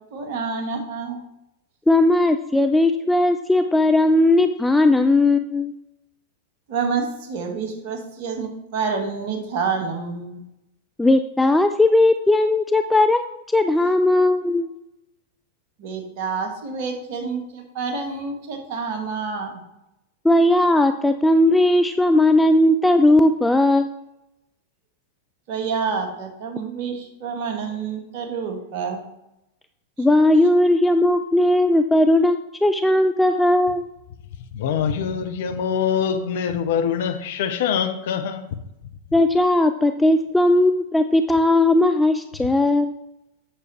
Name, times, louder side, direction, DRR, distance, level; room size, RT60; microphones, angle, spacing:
voice 1, 0.1-1.2 6.7-10.4 15.8-19.6 25.5-29.0, right 5 dB, 50° right, 1.9 m, -28 dB
voice 2, 1.9-5.7 11.0-14.7 20.2-23.9 30.0-33.9 39.1-42.9, left 1 dB, 5° left, 0.4 m, -17 dB
voice 3, 34.5-38.6, left 7 dB, 55° left, 0.8 m, -24 dB
8.7 x 6.8 x 4.3 m
figure-of-eight pair, 90°, 0 cm